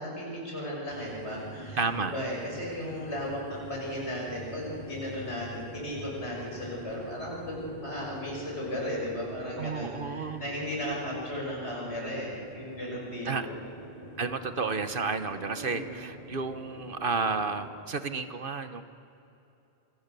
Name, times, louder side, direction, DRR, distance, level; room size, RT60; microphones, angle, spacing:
voice 1, 0.0-13.6 15.5-16.0, equal, 80° left, -3 dB, 6.9 m, -36 dB
sound 1, 0.9-17.7, equal, 35° left, 4.2 m, -45 dB
voice 2, 1.8-2.1 9.6-10.4 13.2-13.5 14.2-18.8, right 4 dB, 55° right, 10 dB, 1.2 m, -31 dB
27.0 x 24.0 x 6.9 m, 2.8 s
omnidirectional pair, 1.1 m